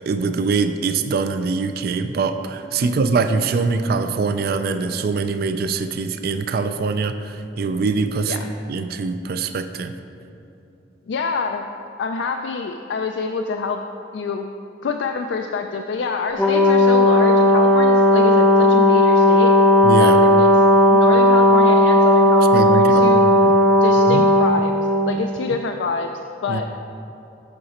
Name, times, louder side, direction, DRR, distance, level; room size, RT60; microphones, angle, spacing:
voice 1, 0.0-8.4 8.7-9.9 19.8-20.2 22.5-23.5 24.1-24.2 26.5-26.6, right 4 dB, 55° right, 9 dB, 0.4 m, -23 dB
voice 2, 2.8-3.2 8.3-8.5 11.1-11.6 12.0-13.8 14.1-14.5 14.8-19.5 20.0-20.5 20.9-23.2 23.8-24.7 25.0-26.1 26.4-26.7, left 4 dB, 85° left, 4 dB, 0.4 m, -26 dB
Brass instrument, 16.4-25.1, left 1 dB, 5° left, 0.5 m, -14 dB
7.8 x 5.7 x 4.2 m, 2.8 s
head